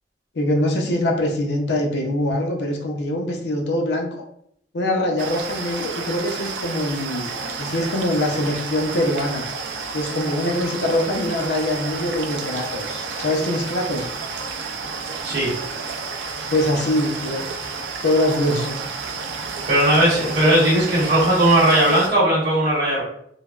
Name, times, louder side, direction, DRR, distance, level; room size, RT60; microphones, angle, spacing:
voice 1, 0.3-4.1 4.7-7.3 7.6-9.5 9.9-14.1 16.5-17.4 18.0-18.8, left 1 dB, 70° left, 2 dB, 0.5 m, -23 dB
sound 1, 5.2-22.1, right 4 dB, 85° right, 0.4 m, -31 dB
voice 2, 19.7-23.0, right 1 dB, 55° right, -7 dB, 1.0 m, -17 dB
3.3 x 2.0 x 2.3 m, 0.70 s
head